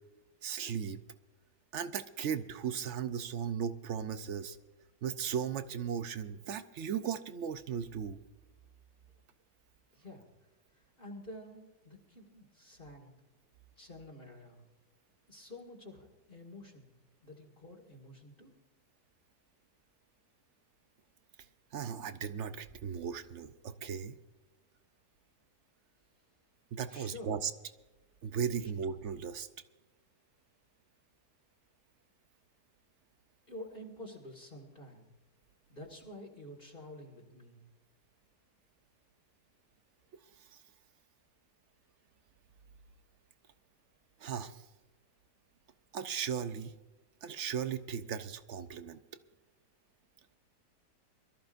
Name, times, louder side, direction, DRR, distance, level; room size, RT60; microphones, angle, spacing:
voice 1, 0.4-1.0 1.7-4.6 5.0-8.2 21.7-24.1 26.7-27.5 28.2-29.5 44.2-44.6 45.9-46.7 47.2-49.0, right 7 dB, 60° right, 11 dB, 0.8 m, -36 dB
voice 2, 9.9-10.2 11.0-13.1 13.8-14.6 15.3-16.9 17.2-18.5 26.9-27.3 28.6-28.7 33.5-35.1 35.7-37.6, left 1 dB, 35° left, -1 dB, 2.2 m, -49 dB
23.5 x 14.0 x 2.6 m, 1.1 s
omnidirectional pair, 1.7 m